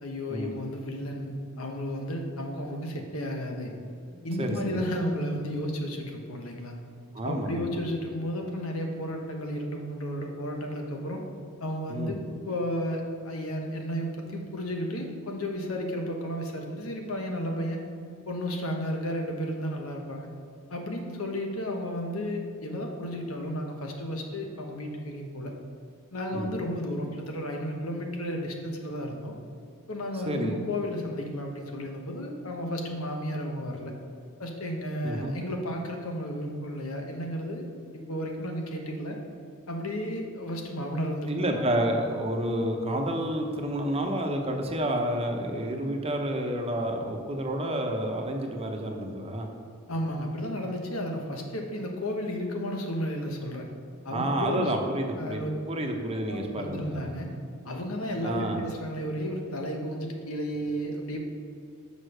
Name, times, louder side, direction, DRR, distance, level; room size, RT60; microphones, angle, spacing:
voice 1, 0.0-3.7 4.2-6.8 7.2-11.2 11.6-17.8 18.3-20.3 20.7-25.5 26.1-29.3 29.9-33.9 34.4-37.7 37.9-39.2 39.7-41.6 49.9-53.7 54.0-54.7 55.2-55.5 56.3-57.3 57.6-61.2, equal, 85° left, 2 dB, 1.2 m, -33 dB
voice 2, 4.1-4.8 7.1-7.8 11.9-12.1 26.3-26.6 30.2-30.6 35.0-35.3 41.3-49.5 54.1-57.0 58.2-58.6, right 1 dB, 30° right, 3 dB, 0.8 m, -30 dB
6.5 x 5.3 x 6.5 m, 2.5 s
head